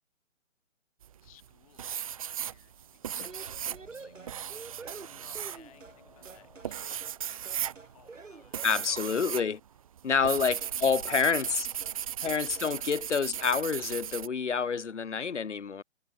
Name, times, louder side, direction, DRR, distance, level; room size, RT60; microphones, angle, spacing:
sound 1, 1.0-1.5 1.8-9.5 9.8-14.3, right 9 dB, 25° right, 1.3 m, -37 dB
voice 1, 1.2-4.4 5.2-9.4 10.1-12.3 12.7-13.3, left 14 dB, 25° left, 7.2 m, -61 dB
sound 2, 2.0-8.0, left 7 dB, 45° left, 5.0 m, -59 dB
sound 3, 3.3-6.0 6.3-6.8 7.0-7.2 7.5-9.5 10.6-10.8 11.1-11.6 11.8-12.0 12.3-12.8, right 4 dB, 65° right, 3.6 m, -48 dB
voice 2, 8.6-9.6 10.0-11.7 12.2-15.8, left 6 dB, 60° left, 1.1 m, -28 dB
figure-of-eight pair, 145°, 40 cm